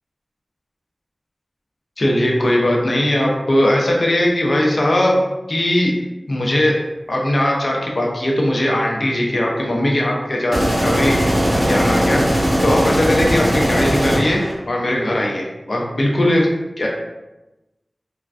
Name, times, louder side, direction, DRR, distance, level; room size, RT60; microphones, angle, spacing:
voice 1, 2.0-5.2 5.5-5.9 6.3-6.7 7.1-12.2 12.6-16.5 16.8-16.9, left 1 dB, 65° left, -1 dB, 0.6 m, -19 dB
sound 1, 10.5-14.5, equal, 20° right, 1.0 m, -18 dB
3.3 x 2.1 x 2.5 m, 1.0 s
wide cardioid pair, 45°, 0 cm